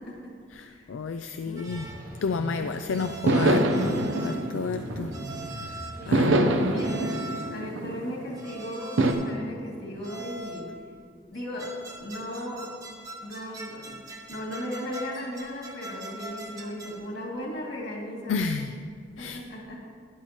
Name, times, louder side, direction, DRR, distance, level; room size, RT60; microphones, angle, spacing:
voice 1, 0.0-0.9 1.4-1.7 2.6-3.0 6.0-10.7 11.3-12.8 13.2-14.0 14.3-18.6 19.2-19.8, equal, 60° left, -3 dB, 2.4 m, -37 dB
voice 2, 0.5-1.9 2.2-5.1 5.5-6.5 18.3-18.7 19.2-19.4, left 5 dB, 85° left, 8 dB, 0.4 m, -31 dB
sound 1, 1.6-2.1 2.9-4.6 5.1-6.0 6.8-7.6 8.3-9.4 10.0-10.7 11.3-17.1, right 2 dB, 20° right, 0.9 m, -42 dB
sound 2, 1.6-6.7, equal, 50° right, 1.6 m, -42 dB
sound 3, 3.3-5.5 6.1-8.4 9.0-9.1, right 1 dB, 80° right, 0.8 m, -25 dB
12.5 x 10.5 x 3.0 m, 2.1 s
head